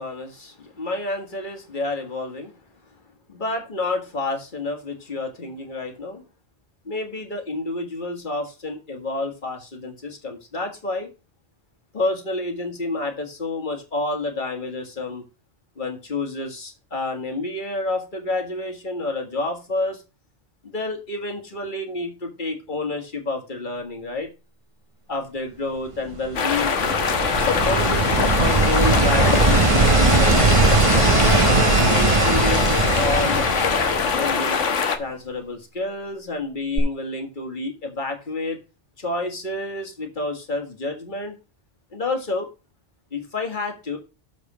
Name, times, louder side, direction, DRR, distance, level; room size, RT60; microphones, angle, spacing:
voice 1, 0.0-2.5 3.3-6.2 6.9-11.1 11.9-15.2 15.8-20.0 20.6-24.3 25.1-27.0 27.4-30.4 31.0-34.6 35.0-38.6 39.0-41.4 41.9-42.5 43.1-44.0, left 2 dB, 40° left, 4 dB, 2.1 m, -29 dB
sound 1, 26.1-34.6 36.8-36.9, right 3 dB, 30° right, 0.9 m, -20 dB
sound 2, 26.3-35.0, left 6 dB, 85° left, 1.4 m, -22 dB
7.2 x 5.2 x 6.0 m, 0.29 s
omnidirectional pair, 1.2 m